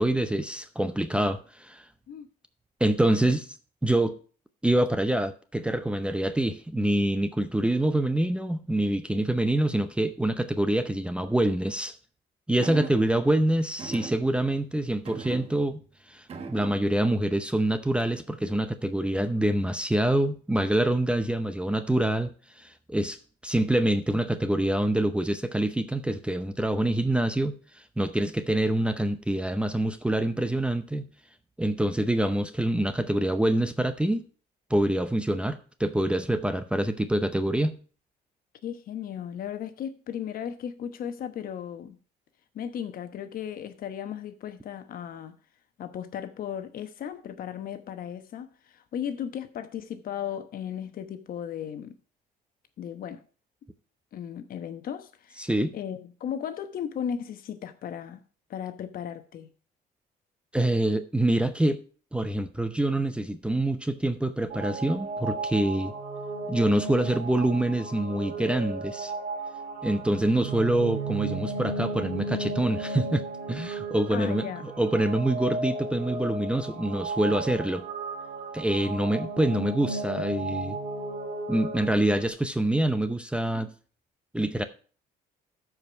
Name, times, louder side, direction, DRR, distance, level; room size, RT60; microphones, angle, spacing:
voice 1, 0.0-1.8 2.8-3.4 3.8-4.2 4.6-12.0 12.5-15.8 16.1-22.3 22.6-23.2 23.4-27.5 28.0-31.0 31.6-34.2 34.7-37.8 55.4-55.8 60.5-61.8 62.1-65.9 66.5-69.1 69.8-77.8 78.5-80.8 81.5-83.7 84.3-84.6, right 1 dB, 5° right, 0.6 m, -26 dB
sound 1, 12.6-13.2 13.8-14.6 15.0-15.9 16.3-17.1 18.0-18.3, right 5 dB, 35° right, 1.2 m, -40 dB
voice 2, 38.6-42.0 42.5-45.4 45.8-52.0 52.8-53.2 54.1-58.2 58.5-59.5 74.1-74.6, left 9 dB, 60° left, 1.0 m, -36 dB
sound 2, 64.5-82.3, right 3 dB, 75° right, 2.1 m, -35 dB
13.0 x 5.0 x 4.5 m
cardioid pair, 110°, 17 cm